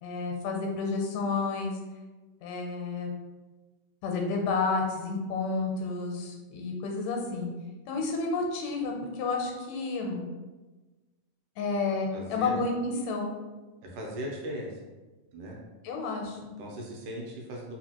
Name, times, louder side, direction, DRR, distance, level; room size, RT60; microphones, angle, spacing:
voice 1, 0.0-1.7 2.4-3.1 4.0-7.5 7.9-10.3 11.6-13.3 15.8-16.5, left 3 dB, 80° left, 1 dB, 2.2 m, -30 dB
voice 2, 11.9-12.6 13.8-14.8 15.3-15.6 16.6-17.8, equal, 75° right, -2 dB, 2.2 m, -38 dB
5.1 x 2.4 x 2.8 m, 1.2 s
omnidirectional pair, 3.8 m